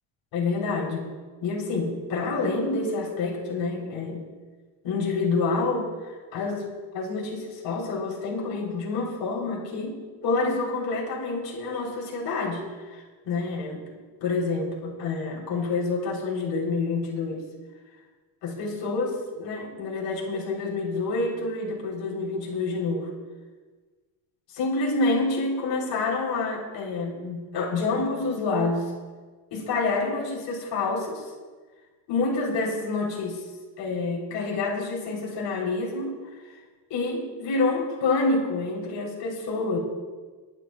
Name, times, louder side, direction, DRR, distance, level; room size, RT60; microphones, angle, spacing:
voice 1, 0.3-1.1 1.4-4.3 4.8-5.9 6.3-6.6 6.9-10.0 10.2-13.8 14.2-17.4 18.4-23.1 24.5-28.9 29.5-31.3 32.1-33.4 33.8-36.1 36.9-39.8, left 3 dB, 60° left, -3 dB, 3.6 m, -28 dB
30.0 x 10.5 x 2.3 m, 1.4 s
cardioid pair, 170°, 47 cm